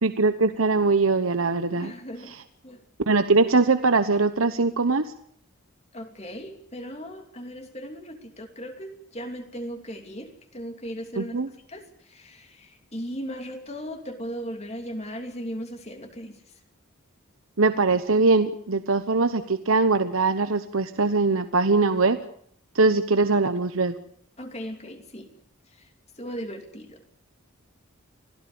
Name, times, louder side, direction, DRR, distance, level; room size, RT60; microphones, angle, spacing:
voice 1, 0.0-1.9 2.3-2.4 3.1-5.1 11.2-11.5 17.6-22.2 22.7-23.9, right 3 dB, 80° right, 10 dB, 1.1 m, -22 dB
voice 2, 1.8-2.4 2.6-2.8 5.9-11.4 11.7-16.4 24.4-25.3 25.7-25.9 26.2-27.2, equal, 30° left, 5 dB, 3.0 m, -37 dB
25.5 x 17.0 x 7.0 m, 0.64 s
head